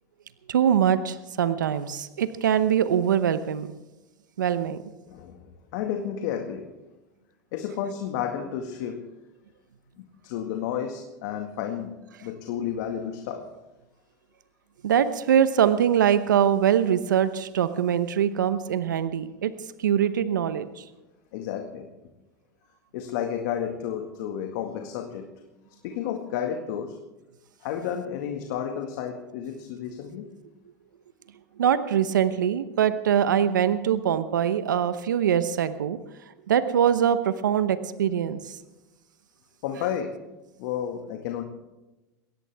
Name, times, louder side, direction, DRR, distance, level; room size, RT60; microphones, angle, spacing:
voice 1, 0.5-3.7 4.4-4.8 14.8-19.5 19.8-20.8 31.6-36.0 36.5-38.6, right 9 dB, 90° right, 12 dB, 0.9 m, -23 dB
voice 2, 5.1-6.7 7.5-9.1 10.2-13.5 21.3-21.9 22.9-25.3 25.8-27.0 27.6-30.3 39.6-40.2 40.6-41.4, left 9 dB, 70° left, 4 dB, 1.9 m, -31 dB
22.5 x 17.0 x 3.5 m, 1.0 s
hypercardioid pair, 95°, 10 cm